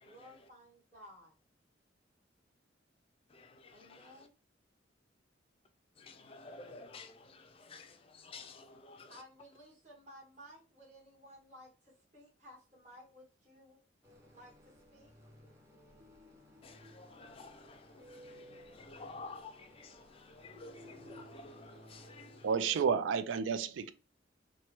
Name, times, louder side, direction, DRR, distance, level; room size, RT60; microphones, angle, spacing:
voice 1, 0.0-1.4 3.7-4.4 9.1-13.8 14.3-15.1, equal, 40° right, 1.2 m, -56 dB
voice 2, 3.3-4.3 6.0-9.2 16.6-22.5, left 3 dB, 30° left, 0.4 m, -52 dB
sound 1, 14.0-22.9, equal, 15° right, 0.6 m, -57 dB
voice 3, 22.4-23.9, right 6 dB, 85° right, 0.3 m, -31 dB
2.8 x 2.1 x 2.9 m
head